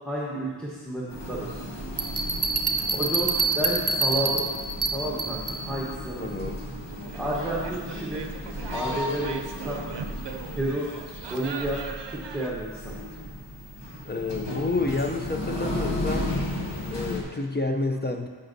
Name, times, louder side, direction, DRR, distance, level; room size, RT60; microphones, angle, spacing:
voice 1, 0.0-1.6 2.9-4.5 4.9-6.4 7.1-8.3 8.7-9.8 10.5-10.9 11.3-11.8 12.1-12.9, right 1 dB, ahead, -6 dB, 1.0 m, -31 dB
sound 1, 1.1-17.2, left 1 dB, 75° left, 1.4 m, -34 dB
Bell, 2.0-5.7, right 4 dB, 35° right, 0.7 m, -26 dB
voice 2, 6.2-6.6 14.0-16.3 16.9-18.3, left 3 dB, 25° left, 4 dB, 0.5 m, -29 dB
sound 2, 6.9-12.5, right 6 dB, 80° right, 0.6 m, -39 dB
13.5 x 5.2 x 2.7 m, 1.5 s
wide cardioid pair, 110°, 42 cm